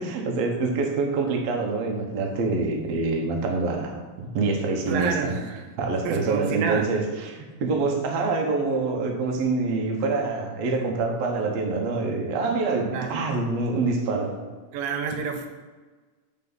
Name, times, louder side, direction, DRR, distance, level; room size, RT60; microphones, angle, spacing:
voice 1, 0.0-5.4 5.8-14.4, right 3 dB, 60° right, 1 dB, 1.9 m, -26 dB
voice 2, 4.9-5.6 6.1-6.9 12.9-13.3 14.7-15.5, right 6 dB, 90° right, 5 dB, 2.5 m, -29 dB
7.6 x 4.5 x 6.0 m, 1.3 s
omnidirectional pair, 4.0 m